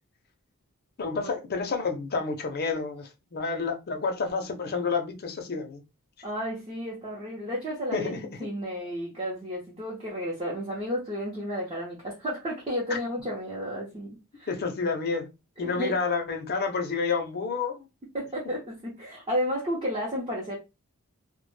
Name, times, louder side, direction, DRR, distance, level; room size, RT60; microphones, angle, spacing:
voice 1, 1.0-5.8 7.9-8.2 14.5-15.3 15.6-17.9, left 4 dB, 45° left, 0.5 m, -29 dB
voice 2, 6.2-14.5 15.6-15.9 18.1-20.6, equal, 25° right, 0.6 m, -32 dB
2.1 x 2.1 x 3.1 m
head